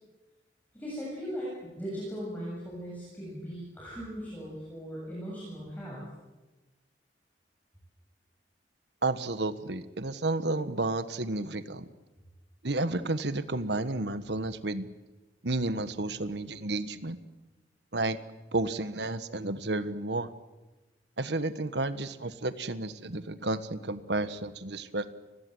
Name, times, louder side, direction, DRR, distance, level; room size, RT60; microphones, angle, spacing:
voice 1, 0.7-6.0, equal, 10° left, -5 dB, 7.8 m, -38 dB
voice 2, 9.0-11.9 12.6-14.9 15.4-17.2 17.9-18.2 18.5-20.3 21.2-25.1, right 2 dB, 80° right, 12 dB, 1.5 m, -31 dB
29.5 x 20.5 x 8.0 m, 1.1 s
head